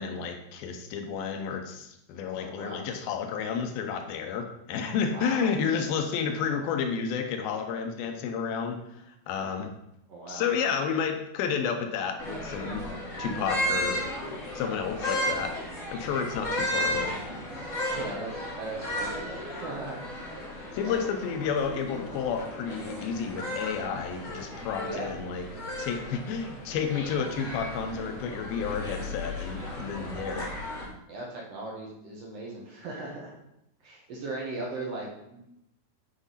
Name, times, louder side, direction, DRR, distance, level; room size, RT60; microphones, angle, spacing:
voice 1, 0.0-9.7 10.3-12.9 13.2-14.1 14.5-15.6 15.9-17.2 20.7-25.5 25.8-30.5, left 6 dB, 75° left, 5 dB, 2.5 m, -31 dB
voice 2, 2.3-2.8 5.1-5.5 10.1-10.5 17.8-20.0 20.3-20.4 20.8-21.0 24.8-25.1 31.1-33.4 33.8-35.4, right 2 dB, 70° right, -3 dB, 1.5 m, -38 dB
sound 1, 12.2-30.8, left 1 dB, 60° left, 0.8 m, -34 dB
9.9 x 4.7 x 4.1 m, 0.82 s
omnidirectional pair, 4.7 m